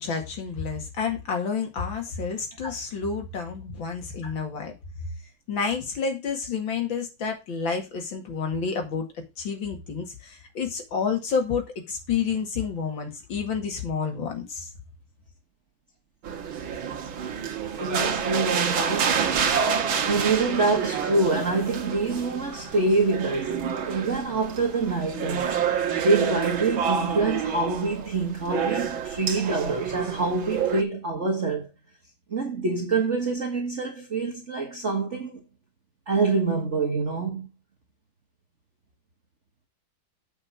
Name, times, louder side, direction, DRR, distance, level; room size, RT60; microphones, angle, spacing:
voice 1, 0.0-4.7 5.5-9.1 9.4-14.7, left 6 dB, 75° left, 2.8 m, -29 dB
sound 1, 16.2-30.8, right 7 dB, 90° right, 2.1 m, -28 dB
voice 2, 17.8-19.3 19.9-31.7 32.3-35.4 36.1-37.5, right 3 dB, 40° right, 1.7 m, -26 dB
8.1 x 5.6 x 5.9 m
omnidirectional pair, 2.1 m